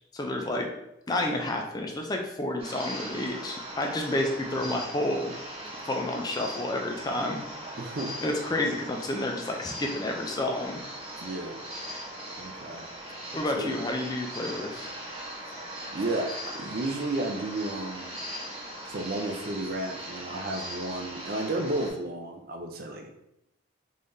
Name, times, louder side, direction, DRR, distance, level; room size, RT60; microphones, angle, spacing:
voice 1, 0.1-0.7 1.1-5.3 5.9-7.4 8.2-10.8 13.3-14.9, left 1 dB, 20° left, 2 dB, 0.3 m, -30 dB
sound 1, 2.6-21.9, equal, 30° right, 0.9 m, -40 dB
voice 2, 7.8-8.1 11.2-11.6 12.4-12.9 13.5-13.7 15.9-16.3 16.6-18.1 18.9-23.1, right 2 dB, 50° right, 4 dB, 0.4 m, -32 dB
3.7 x 3.2 x 2.6 m, 0.85 s
head